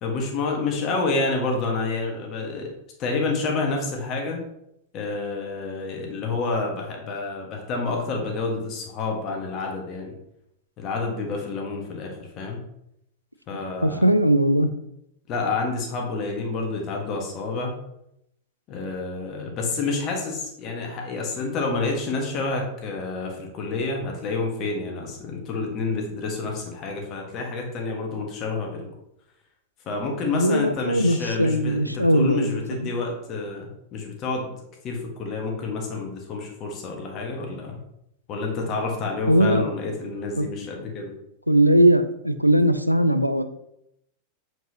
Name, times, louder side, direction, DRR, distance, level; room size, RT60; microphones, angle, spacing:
voice 1, 0.0-2.7 3.0-4.4 4.9-10.1 10.8-12.6 13.5-14.0 15.3-17.7 18.7-28.9 29.8-34.5 34.8-37.8 38.3-41.1, left 3 dB, 35° left, 1 dB, 1.4 m, -29 dB
voice 2, 13.5-14.7 30.3-32.9 39.3-39.7 40.4-40.5 41.5-43.4, right 1 dB, 90° right, 10 dB, 0.4 m, -20 dB
7.7 x 4.6 x 2.8 m, 0.80 s
figure-of-eight pair, 90°, 0 cm